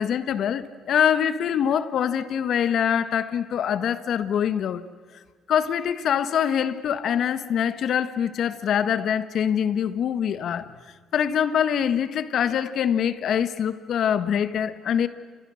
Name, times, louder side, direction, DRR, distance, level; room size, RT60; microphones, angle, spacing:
voice 1, 0.0-4.8 5.5-10.7 11.1-15.1, left 8 dB, 65° left, 1.4 m, -24 dB
29.5 x 28.0 x 6.5 m
supercardioid pair, 75°, 0 cm